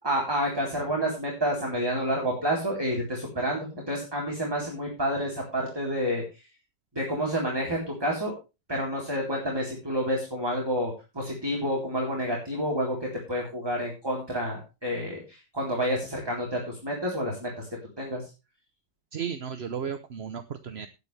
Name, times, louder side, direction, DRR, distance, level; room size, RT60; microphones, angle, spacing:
voice 1, 0.0-6.2 7.0-8.3 8.7-17.7 18.0-18.2, equal, 15° right, -2 dB, 3.8 m, -29 dB
voice 2, 19.1-20.9, right 7 dB, 45° right, 9 dB, 0.9 m, -34 dB
17.0 x 9.8 x 3.3 m, 0.28 s
omnidirectional pair, 1.9 m